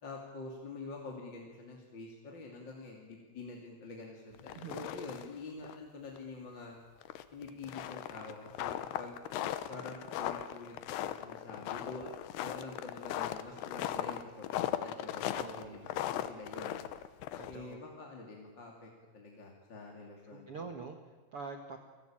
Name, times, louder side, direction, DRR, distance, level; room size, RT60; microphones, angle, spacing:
voice 1, 0.0-6.8 7.3-9.2 9.7-16.8 17.5-20.5, left 3 dB, 30° left, 0 dB, 2.8 m, -47 dB
sound 1, 4.4-5.4 5.6-5.8 6.2-6.3 7.0-17.7, left 12 dB, 80° left, 3.0 m, -38 dB
voice 2, 4.5-4.9 15.4-15.8 17.4-17.8 20.3-21.8, right 4 dB, 55° right, 5 dB, 1.6 m, -45 dB
29.5 x 19.0 x 8.8 m, 1.3 s
omnidirectional pair, 4.9 m